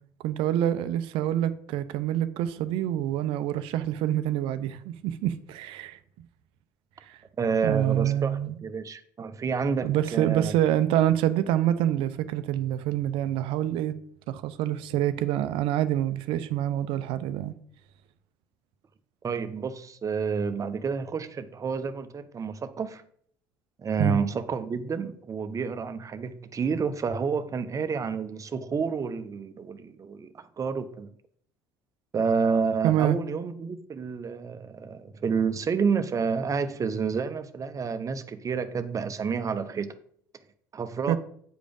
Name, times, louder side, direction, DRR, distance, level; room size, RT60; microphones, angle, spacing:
voice 1, 0.2-6.0 7.1-7.2 7.6-8.6 9.8-14.0 14.3-17.5 24.0-24.2 32.8-33.2 41.1-41.2, right 12 dB, 60° right, 0.7 m, -26 dB
voice 2, 7.4-10.5 19.2-23.0 23.8-31.1 32.1-40.0 40.7-41.2, right 5 dB, 35° right, 0.9 m, -29 dB
9.0 x 5.1 x 5.3 m
hypercardioid pair, 60°, 10 cm